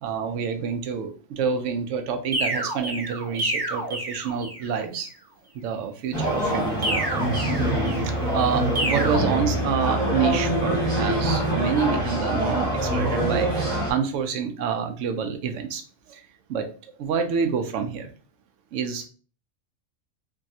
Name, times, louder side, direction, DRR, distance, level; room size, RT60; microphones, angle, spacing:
voice 1, 0.0-5.1 5.5-7.0 7.8-16.7 17.0-18.1 18.7-19.1, right 6 dB, 75° right, 6 dB, 0.9 m, -28 dB
sound 1, 2.3-4.7 6.8-8.2 8.7-9.2, right 1 dB, 25° right, 0.5 m, -29 dB
sound 2, 6.1-13.9, right 1 dB, 5° left, 1.0 m, -25 dB
sound 3, 9.0-13.0, left 4 dB, 65° left, 0.8 m, -33 dB
3.4 x 2.3 x 2.6 m, 0.39 s
omnidirectional pair, 1.3 m